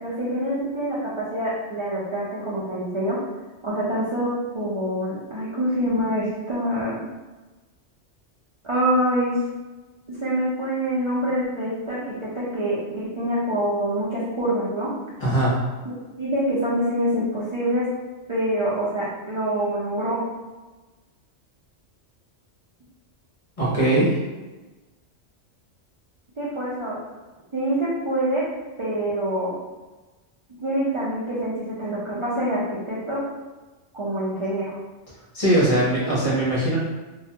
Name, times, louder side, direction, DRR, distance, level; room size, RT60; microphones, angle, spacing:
voice 1, 0.0-3.2 3.6-7.0 8.6-9.4 10.1-14.9 15.8-17.9 18.3-20.2 26.4-27.0 27.5-28.4 28.8-29.5 30.6-33.2 33.9-34.8, right 1 dB, 55° right, -8 dB, 0.3 m, -25 dB
voice 2, 15.2-15.6 23.6-24.2 35.3-36.8, right 1 dB, 40° left, -8 dB, 0.6 m, -20 dB
2.3 x 2.1 x 2.7 m, 1.2 s
omnidirectional pair, 1.2 m